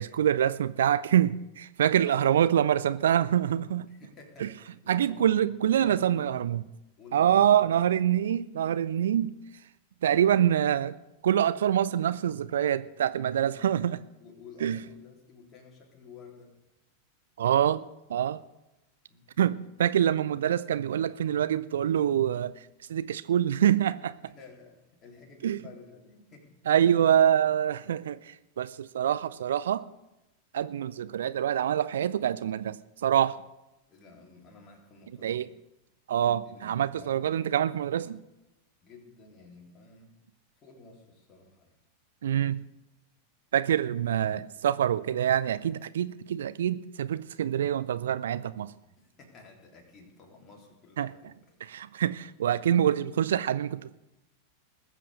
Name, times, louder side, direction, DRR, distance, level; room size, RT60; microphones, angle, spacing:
voice 1, 0.0-3.9 4.4-4.5 4.9-6.6 7.1-9.3 10.0-10.9 11.2-14.0 14.6-14.8 17.4-18.4 19.4-22.5 22.9-24.1 25.4-25.6 26.7-29.8 30.5-32.8 33.0-33.4 35.2-35.5 36.1-38.2 42.2-42.6 43.5-48.7 51.0-51.1 51.6-53.9, right 10 dB, 60° right, 0.4 m, -25 dB
voice 2, 2.0-2.4 3.9-6.5 7.0-7.7 10.3-10.6 13.3-13.5 14.2-16.5 19.1-19.3 24.3-26.6 33.9-35.5 36.4-37.5 38.8-40.1 40.6-41.8 48.9-51.5, left 4 dB, 25° left, 3.7 m, -51 dB
20.0 x 7.6 x 6.7 m
figure-of-eight pair, 90°, 0 cm